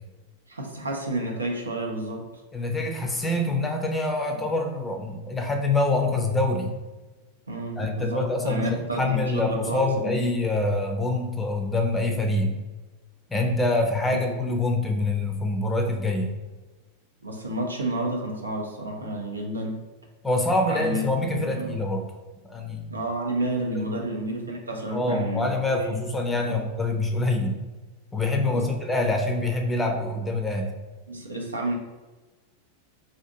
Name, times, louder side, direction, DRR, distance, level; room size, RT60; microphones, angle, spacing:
voice 1, 0.5-2.3 4.3-4.4 7.5-10.2 14.1-14.3 17.2-19.8 20.7-21.8 22.9-26.0 26.3-26.6 28.5-28.7 31.1-31.7, right 1 dB, 80° right, 1 dB, 0.5 m, -31 dB
voice 2, 2.5-6.7 7.8-12.5 13.3-16.3 20.2-22.0 22.5-22.9 23.7-24.0 24.9-27.6 28.1-30.7, left 2 dB, 10° left, 3 dB, 0.5 m, -25 dB
2.6 x 2.5 x 3.4 m, 1.2 s
figure-of-eight pair, 90°, 0 cm